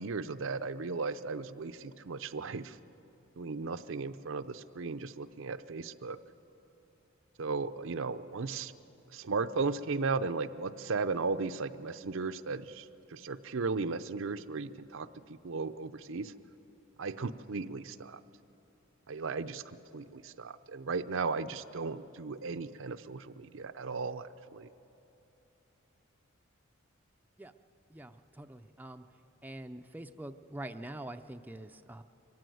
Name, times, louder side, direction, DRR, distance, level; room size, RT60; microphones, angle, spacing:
voice 1, 0.0-2.8 3.4-6.2 7.4-8.7 9.1-16.3 17.0-18.2 19.1-24.7, right 4 dB, 65° right, 11 dB, 0.6 m, -36 dB
voice 2, 27.9-29.0 29.4-32.0, right 1 dB, 10° right, 7 dB, 0.5 m, -45 dB
22.5 x 15.5 x 9.3 m, 3.0 s
head